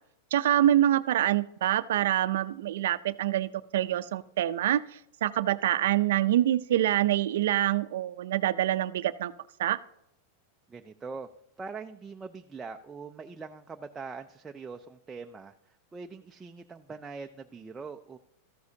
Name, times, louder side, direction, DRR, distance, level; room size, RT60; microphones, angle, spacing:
voice 1, 0.3-4.8 5.2-9.3 9.6-9.8, right 12 dB, 80° right, 15 dB, 0.4 m, -25 dB
voice 2, 10.7-11.3 11.6-18.2, right 4 dB, 15° right, 5 dB, 0.4 m, -42 dB
13.5 x 9.5 x 2.8 m, 0.80 s
supercardioid pair, 150°, 0 cm